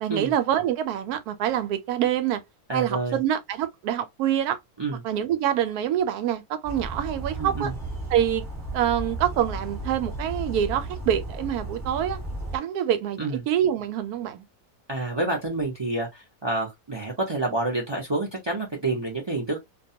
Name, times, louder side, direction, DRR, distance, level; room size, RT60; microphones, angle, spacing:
voice 1, 0.0-2.4 2.7-4.6 5.0-7.7 8.1-8.5 8.7-12.2 12.5-13.2 13.5-14.4, right 10 dB, 80° right, 1.1 m, -25 dB
voice 2, 2.7-3.2 4.8-5.0 7.4-7.7 13.2-13.4 14.9-19.6, right 2 dB, 35° right, 0.4 m, -28 dB
sound 1, 6.6-12.6, right 1 dB, 15° right, 1.0 m, -34 dB
2.5 x 2.3 x 2.7 m
omnidirectional pair, 1.6 m